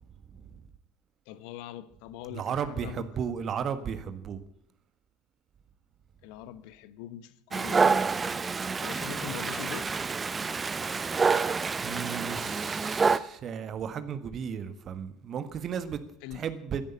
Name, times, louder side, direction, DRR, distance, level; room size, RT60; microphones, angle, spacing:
voice 1, 0.3-0.6 2.3-4.4 11.8-16.0 16.3-16.8, right 7 dB, 40° right, 1.5 m, -34 dB
voice 2, 1.3-3.1 6.2-8.0 8.8-9.9 16.2-16.4, left 12 dB, 60° left, 1.0 m, -42 dB
Dog, 7.5-13.2, right 5 dB, 25° right, 0.6 m, -28 dB
13.0 x 11.0 x 9.9 m
figure-of-eight pair, 70°, 0 cm